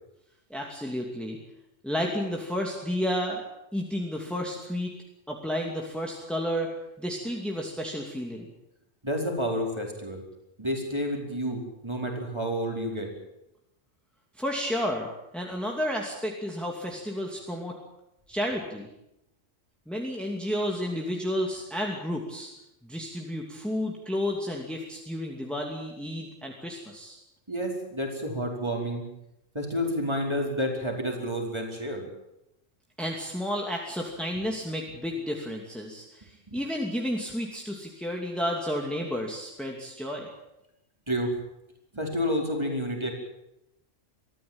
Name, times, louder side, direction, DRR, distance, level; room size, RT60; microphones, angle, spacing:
voice 1, 0.5-1.4 1.8-3.4 3.7-4.9 5.3-6.7 7.0-8.5 14.4-15.1 15.3-17.7 18.3-18.9 19.9-22.5 22.8-27.2 33.0-40.3, equal, ahead, 0 dB, 2.7 m, -31 dB
voice 2, 9.0-10.2 10.6-13.1 27.5-29.0 29.5-32.1 36.5-36.6 41.1-41.3 41.9-43.1, equal, 20° right, 1 dB, 4.6 m, -30 dB
23.5 x 15.0 x 8.9 m, 0.87 s
omnidirectional pair, 1.3 m